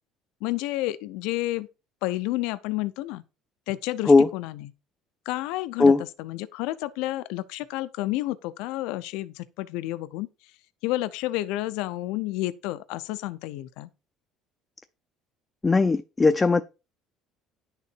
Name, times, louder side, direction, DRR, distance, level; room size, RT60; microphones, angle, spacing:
voice 1, 0.4-1.7 2.0-3.2 3.7-4.7 5.3-10.5 10.8-13.9, left 17 dB, 85° left, 0.6 m, -30 dB
voice 2, 15.6-16.6, left 3 dB, 15° left, 0.5 m, -18 dB
10.5 x 6.8 x 4.5 m
cardioid pair, 155°, 0 cm